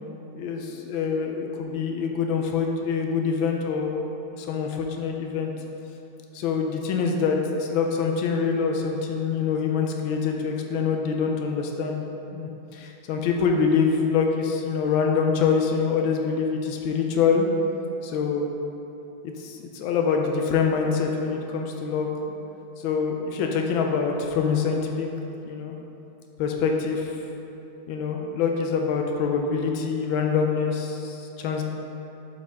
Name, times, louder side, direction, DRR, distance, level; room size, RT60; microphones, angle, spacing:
voice 1, 0.3-5.5 6.3-12.0 12.3-17.5 18.0-18.5 19.2-22.1 22.8-25.1 25.4-25.7 26.4-27.2 27.9-31.6, left 5 dB, 80° left, 2 dB, 1.4 m, -25 dB
7.3 x 4.6 x 3.5 m, 2.9 s
omnidirectional pair, 2.3 m